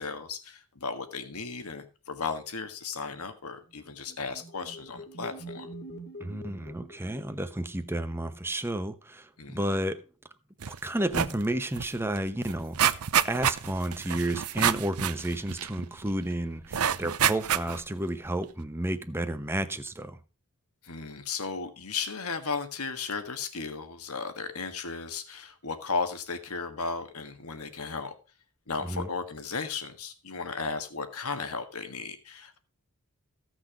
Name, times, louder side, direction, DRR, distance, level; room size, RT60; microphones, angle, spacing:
voice 1, 0.0-5.7 9.4-9.8 20.8-28.1 28.7-32.6, left 4 dB, 75° left, 1.6 m, -35 dB
sound 1, 3.8-7.8, right 1 dB, 50° left, 2.3 m, -45 dB
voice 2, 6.2-10.0 10.7-12.8 13.2-20.2 28.9-29.1, right 1 dB, 10° right, 0.9 m, -31 dB
sound 2, 10.6-10.8 11.1-11.4 11.8-11.9 12.2-16.1 16.7-17.9 18.4-18.5, right 9 dB, 80° right, 0.7 m, -28 dB
15.5 x 6.2 x 5.0 m
head